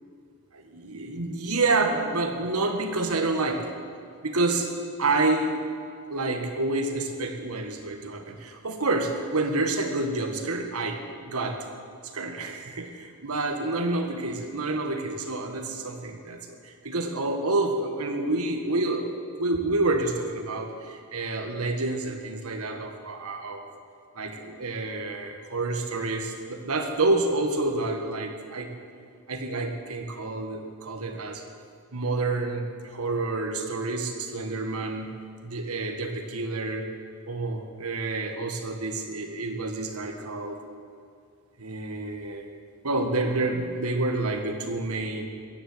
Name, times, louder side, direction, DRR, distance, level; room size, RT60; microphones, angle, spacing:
voice 1, 0.5-3.7 4.2-4.7 5.0-5.5 6.1-11.6 12.1-19.1 19.4-23.6 24.2-28.7 29.3-31.4 31.9-35.1 35.4-36.9 37.3-40.6 41.6-42.5 42.8-45.2, right 2 dB, 80° right, 4 dB, 1.8 m, -28 dB
15.0 x 10.5 x 8.0 m, 2.3 s
head